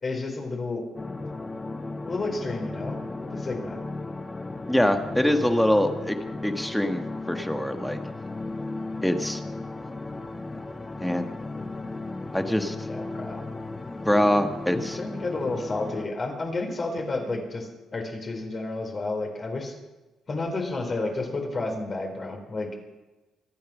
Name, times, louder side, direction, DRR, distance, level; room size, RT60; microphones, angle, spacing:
voice 1, 0.0-0.8 2.1-3.8 9.4-9.5 12.9-13.4 14.7-19.7 20.3-22.7, left 3 dB, 35° left, 1 dB, 4.2 m, -31 dB
sound 1, 1.0-16.1, left 2 dB, 20° left, 1.3 m, -35 dB
voice 2, 4.7-6.2 6.4-7.0 7.3-8.0 9.0-9.4 11.0-11.3 12.3-12.7 14.0-15.0, left 1 dB, 5° left, 6 dB, 1.6 m, -24 dB
24.5 x 9.3 x 6.2 m, 1.1 s
cardioid pair, 90°, 0 cm